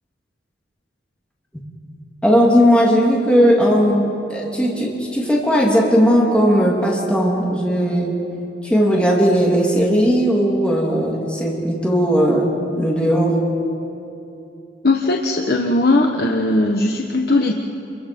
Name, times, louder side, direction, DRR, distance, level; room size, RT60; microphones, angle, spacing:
voice 1, 2.2-8.2 8.6-13.4, equal, 5° left, -4 dB, 3.0 m, -17 dB
voice 2, 14.8-17.5, left 2 dB, 55° left, 1 dB, 1.2 m, -18 dB
29.0 x 23.5 x 5.4 m, 2.8 s
head